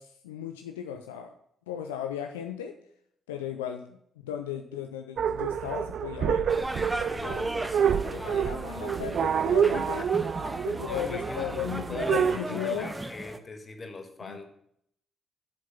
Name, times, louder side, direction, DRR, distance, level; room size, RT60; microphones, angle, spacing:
voice 1, 0.0-1.3 1.7-2.7 3.3-6.5 7.2-7.5 7.9-10.0 10.6-12.9 14.3-14.4, left 9 dB, 85° left, 5 dB, 0.5 m, -36 dB
sound 1, 5.2-12.4, right 8 dB, 60° right, 0.4 m, -28 dB
sound 2, 6.5-13.4, right 1 dB, 15° right, 1.0 m, -36 dB
voice 2, 7.0-9.2 9.6-10.1 10.4-14.5, left 3 dB, 40° left, 6 dB, 1.5 m, -42 dB
7.6 x 7.4 x 5.8 m, 0.72 s
hypercardioid pair, 40°, 0 cm